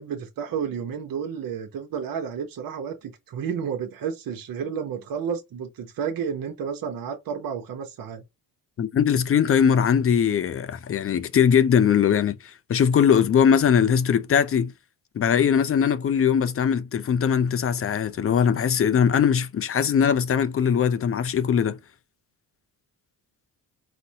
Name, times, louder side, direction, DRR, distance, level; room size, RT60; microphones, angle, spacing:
voice 1, 0.0-8.2, right 7 dB, 55° right, 0.7 m, -31 dB
voice 2, 8.8-14.7 15.2-21.8, left 7 dB, 35° left, 0.4 m, -21 dB
4.0 x 2.1 x 2.7 m
cardioid pair, 80°, 41 cm